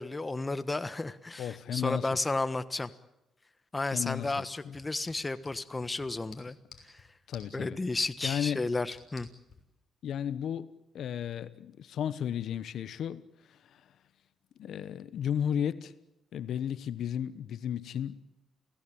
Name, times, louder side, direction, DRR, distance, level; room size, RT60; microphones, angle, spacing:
voice 1, 0.0-2.9 3.7-6.6 7.5-9.3, left 2 dB, 20° left, 1.3 m, -33 dB
voice 2, 1.4-2.2 3.9-4.8 7.3-7.8 8.2-8.6 10.0-13.8 14.6-15.9 16.3-18.2, left 9 dB, 70° left, 1.1 m, -34 dB
sound 1, 4.6-9.6, left 5 dB, 45° left, 6.5 m, -55 dB
29.0 x 17.5 x 8.8 m
cardioid pair, 90°, 0 cm